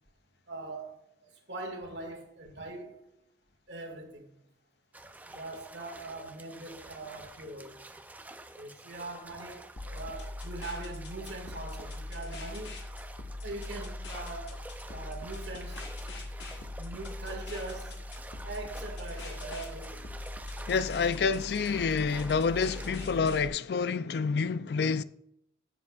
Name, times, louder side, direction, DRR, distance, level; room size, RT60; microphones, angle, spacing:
voice 1, 0.5-3.1 3.7-4.3 5.3-7.8 8.6-12.8 13.4-14.6 14.8-15.9 16.2-18.0 18.4-20.1, right 2 dB, 80° right, 1.9 m, -42 dB
sound 1, 4.9-23.4, right 2 dB, 10° right, 0.4 m, -49 dB
sound 2, 9.8-23.5, left 2 dB, 80° left, 1.4 m, -41 dB
voice 2, 20.7-25.0, left 5 dB, 60° left, 0.4 m, -28 dB
17.0 x 6.9 x 2.4 m
head